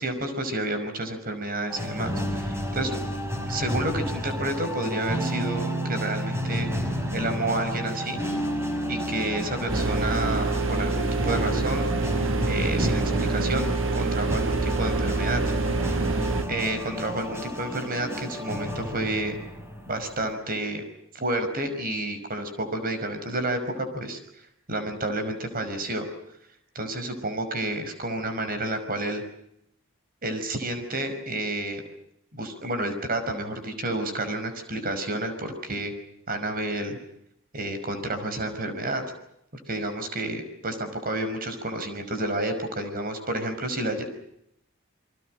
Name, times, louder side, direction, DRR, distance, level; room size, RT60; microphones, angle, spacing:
voice 1, 0.0-2.9 3.5-8.2 8.9-12.1 12.4-15.4 16.5-19.4 19.9-20.8 21.1-24.2 24.7-26.1 26.8-29.2 30.2-31.8 32.3-35.9 36.3-37.0 37.5-39.0 39.7-44.1, right 1 dB, 45° right, 8 dB, 5.6 m, -30 dB
sound 1, 1.7-20.3, equal, 15° right, 5.6 m, -31 dB
sound 2, 9.7-16.4, right 3 dB, 65° right, 1.7 m, -26 dB
29.5 x 23.5 x 6.5 m, 0.76 s
head